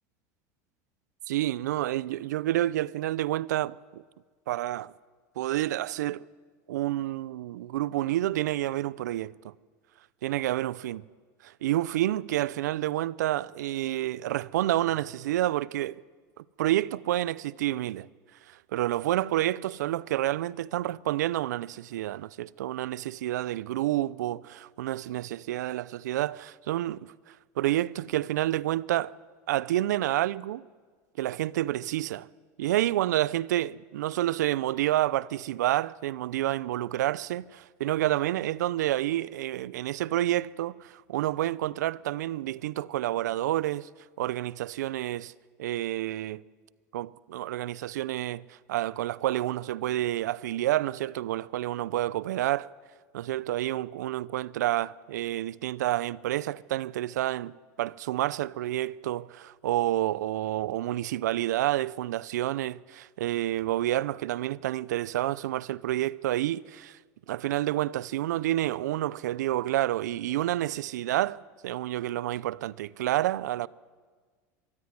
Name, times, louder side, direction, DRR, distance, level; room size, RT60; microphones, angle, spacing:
voice 1, 1.3-4.0 4.5-4.9 5.4-6.3 6.7-9.5 10.2-11.0 11.4-16.0 16.4-18.1 18.5-29.1 29.5-30.6 31.2-32.3 32.6-43.9 44.2-45.3 45.6-46.4 46.9-52.7 53.1-67.0 67.3-73.7, right 14 dB, 90° right, 0.5 m, -29 dB
23.0 x 13.5 x 9.6 m
supercardioid pair, 105°, 9 cm